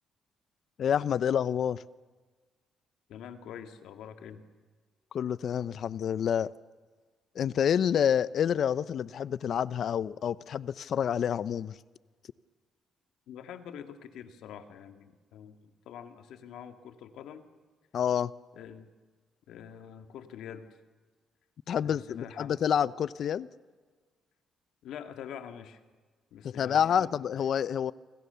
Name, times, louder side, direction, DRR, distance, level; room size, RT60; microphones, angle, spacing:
voice 1, 0.8-1.8 5.1-6.5 7.4-11.7 17.9-18.3 21.7-23.5 26.4-27.9, left 8 dB, 60° left, 18 dB, 0.7 m, -28 dB
voice 2, 3.1-4.4 13.3-17.4 18.5-18.9 19.5-20.7 21.8-22.5 24.8-25.8 26.3-27.3, left 8 dB, 80° left, 7 dB, 2.2 m, -45 dB
28.5 x 24.5 x 7.0 m, 1.4 s
cardioid pair, 90°, 0 cm